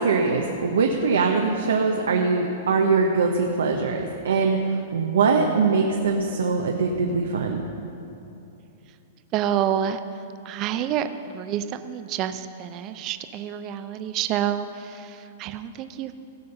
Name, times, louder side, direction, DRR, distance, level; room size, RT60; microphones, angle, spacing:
voice 1, 0.0-4.6 4.9-7.6, right 4 dB, 85° right, 2 dB, 0.8 m, -22 dB
voice 2, 9.3-10.0 10.5-16.1, right 10 dB, 35° right, 10 dB, 0.5 m, -28 dB
16.0 x 5.4 x 6.7 m, 2.7 s
hypercardioid pair, 135°, 0 cm